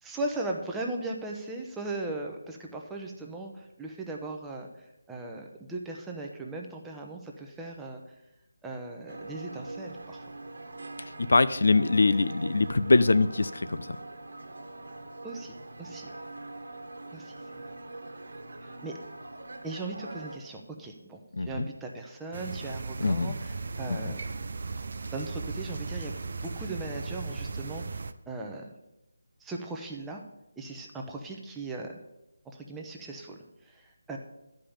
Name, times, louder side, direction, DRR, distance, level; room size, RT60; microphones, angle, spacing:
voice 1, 0.0-8.0 8.6-10.2 15.2-16.1 17.1-17.7 18.6-18.9 19.6-24.2 25.1-28.7 29.4-30.2 30.6-32.0 32.4-34.2, right 2 dB, 5° right, 0 dB, 0.9 m, -38 dB
sound 1, 9.1-20.4, right 2 dB, 75° right, 1.3 m, -43 dB
voice 2, 11.2-13.9 21.4-21.7 23.0-23.3 23.9-24.0, left 3 dB, 70° left, 13 dB, 0.5 m, -23 dB
sound 2, 22.3-28.1, right 4 dB, 55° right, 0.6 m, -36 dB
11.0 x 5.3 x 7.2 m, 0.91 s
figure-of-eight pair, 165°, 0 cm